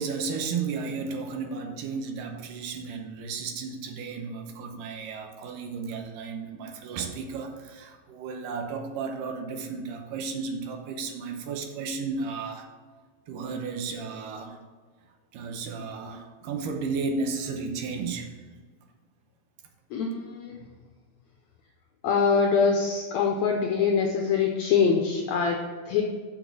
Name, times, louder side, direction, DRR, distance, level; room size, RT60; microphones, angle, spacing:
voice 1, 0.0-12.7 13.3-14.6 15.3-18.3, right 4 dB, 80° right, 4 dB, 2.3 m, -33 dB
voice 2, 19.9-20.6 22.0-26.0, left 5 dB, 80° left, 2 dB, 1.6 m, -24 dB
6.5 x 6.2 x 6.1 m, 1.5 s
omnidirectional pair, 4.0 m